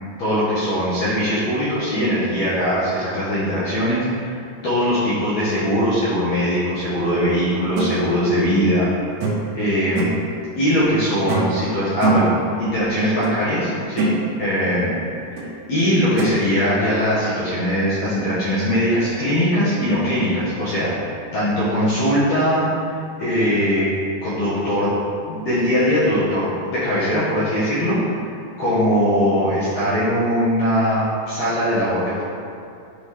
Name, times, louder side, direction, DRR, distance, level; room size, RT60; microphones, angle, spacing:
voice 1, 0.2-4.4 4.6-8.9 9.5-10.1 10.6-12.3 12.6-14.1 14.4-15.0 15.3-22.7 23.2-23.9 24.2-24.9 25.3-28.0 28.6-32.2, equal, 75° left, -11 dB, 1.5 m, -20 dB
sound 1, 7.8-7.9 9.2-9.6 10.0-10.2 11.3-11.6 12.0-12.4 13.2-13.4 13.7-14.2 15.4-15.5 16.2-16.3, right 4 dB, 75° right, 2.8 m, -22 dB
9.8 x 3.7 x 3.3 m, 2.6 s
omnidirectional pair, 4.9 m